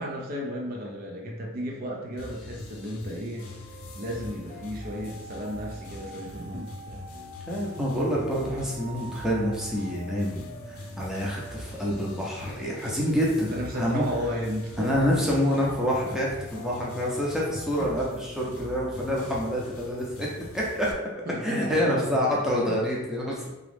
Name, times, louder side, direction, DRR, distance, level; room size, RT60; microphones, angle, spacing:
voice 1, 0.0-3.5 3.9-7.0 13.4-15.0 15.5-15.6 17.8-17.9 21.3-21.9 22.3-22.4 22.7-22.8, equal, 40° right, -1 dB, 0.6 m, -34 dB
sound 1, 2.2-20.9, left 1 dB, 70° left, 0.6 m, -43 dB
sound 2, 3.4-17.7, right 1 dB, 90° right, 1.5 m, -46 dB
voice 2, 7.5-10.4 10.7-13.5 13.7-14.0 14.8-20.3 20.5-20.9 21.4-23.5, equal, ahead, -5 dB, 0.7 m, -27 dB
3.6 x 3.0 x 3.4 m, 1.0 s
head